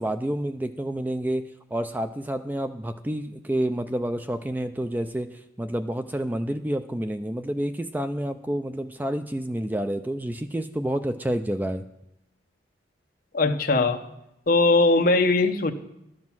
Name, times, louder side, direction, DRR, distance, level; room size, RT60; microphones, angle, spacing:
voice 1, 0.0-11.8, right 1 dB, 10° right, 8 dB, 0.3 m, -29 dB
voice 2, 13.3-14.0 14.5-15.7, left 3 dB, 50° left, 6 dB, 0.9 m, -20 dB
12.0 x 7.4 x 6.1 m, 0.86 s
head